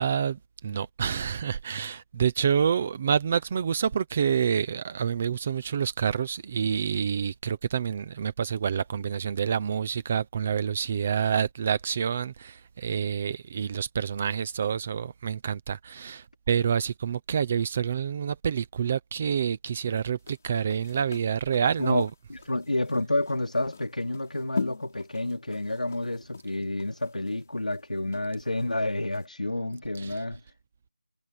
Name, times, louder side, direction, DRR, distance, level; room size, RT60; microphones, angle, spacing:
voice 1, 0.0-22.1 30.0-30.2, right 7 dB, 5° right, 0.4 m, -28 dB
sound 1, 20.2-28.7 29.1-29.3, left 4 dB, 20° left, 5.1 m, -40 dB
voice 2, 21.8-30.4, left 1 dB, 65° left, 3.4 m, -29 dB
figure-of-eight pair, 180°, 4 cm